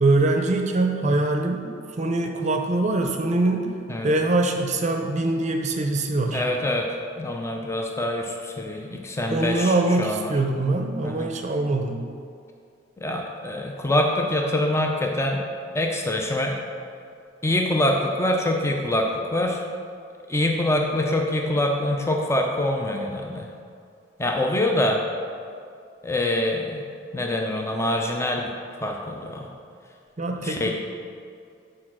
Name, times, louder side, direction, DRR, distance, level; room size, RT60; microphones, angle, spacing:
voice 1, 0.0-1.6 2.0-3.7 4.0-6.4 9.3-12.0 30.2-30.7, right 2 dB, 40° right, 3 dB, 0.6 m, -23 dB
voice 2, 6.3-6.9 7.2-9.7 10.0-10.3 11.0-11.3 13.0-15.4 15.7-16.6 17.4-19.6 20.3-23.5 24.2-25.0 26.0-26.8 27.1-28.5 28.8-29.5 30.4-30.7, left 1 dB, 15° left, 1 dB, 0.5 m, -25 dB
6.4 x 4.8 x 6.1 m, 2.3 s
head